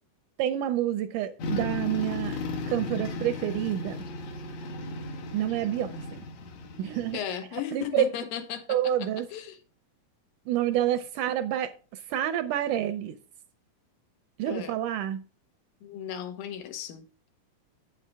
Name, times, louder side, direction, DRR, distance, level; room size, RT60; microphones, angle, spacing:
voice 1, 0.4-2.4 2.7-4.0 5.3-6.2 6.8-7.2 7.7-8.1 8.7-9.3 10.5-11.7 12.1-13.2 14.4-15.2, right 11 dB, 80° right, 1.9 m, -28 dB
sound 1, 1.4-7.2, left 3 dB, 60° left, 2.4 m, -35 dB
voice 2, 7.1-9.6 14.5-14.8 15.8-17.1, left 10 dB, 85° left, 2.8 m, -36 dB
8.4 x 7.4 x 3.4 m
omnidirectional pair, 4.0 m